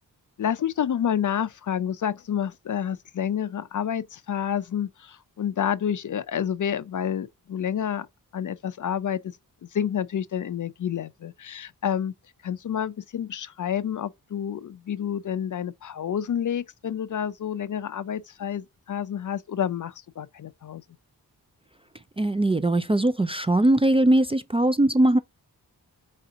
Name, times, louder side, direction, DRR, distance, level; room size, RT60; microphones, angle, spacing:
voice 1, 0.4-8.1 8.3-9.2 9.7-12.1 12.4-20.8, left 9 dB, 50° left, 0.5 m, -29 dB
voice 2, 22.2-25.2, right 1 dB, 15° right, 0.4 m, -20 dB
4.9 x 2.8 x 3.6 m
cardioid pair, 45°, 40 cm